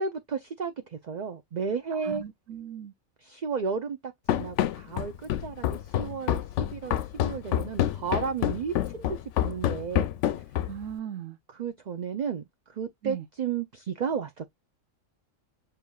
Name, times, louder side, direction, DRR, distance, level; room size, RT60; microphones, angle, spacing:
voice 1, 0.0-2.2 3.2-6.4 6.7-10.1 11.5-14.6, right 6 dB, 45° right, 0.6 m, -33 dB
voice 2, 1.9-2.9 10.7-11.4 13.0-13.2, right 9 dB, 85° right, 1.1 m, -38 dB
Run, 4.3-10.9, left 11 dB, 70° left, 0.9 m, -27 dB
6.8 x 3.2 x 2.3 m
omnidirectional pair, 1.3 m